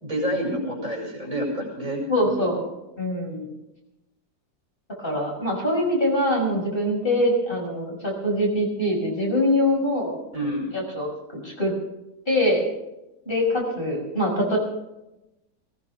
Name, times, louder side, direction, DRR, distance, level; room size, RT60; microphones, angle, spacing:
voice 1, 0.0-2.5 10.3-10.7, equal, 50° right, -1 dB, 6.1 m, -28 dB
voice 2, 2.1-3.5 5.0-10.2 10.7-11.7 12.3-12.6 13.3-14.6, left 1 dB, 30° left, -2 dB, 5.9 m, -24 dB
20.0 x 19.0 x 3.6 m, 0.94 s
omnidirectional pair, 1.8 m